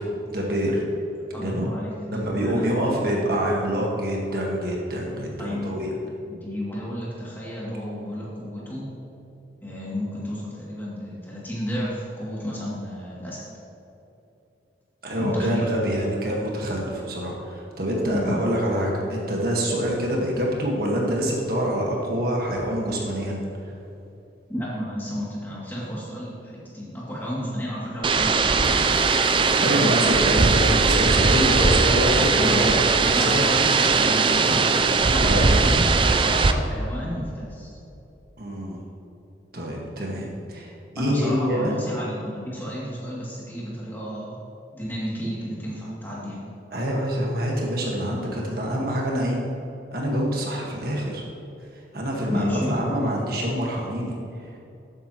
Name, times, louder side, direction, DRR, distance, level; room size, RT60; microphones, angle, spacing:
voice 1, 0.3-0.8 1.4-1.7 2.1-5.9 15.0-23.4 29.6-33.4 35.2-35.5 38.4-38.9 39.5-40.7 40.9-41.7 46.7-49.4 49.9-51.2 51.9-54.1, equal, 55° right, -2 dB, 1.6 m, -26 dB
voice 2, 1.3-3.4 5.4-5.9 6.3-8.8 9.6-13.4 15.2-15.7 18.1-18.4 24.5-28.8 29.5-30.5 32.3-32.6 33.1-37.7 41.0-44.4 44.7-46.4 52.3-52.8, equal, 10° left, -7 dB, 2.5 m, -32 dB
sound 1, 28.0-36.5, right 4 dB, 25° right, 0.4 m, -19 dB
13.0 x 9.1 x 3.0 m, 2.9 s
head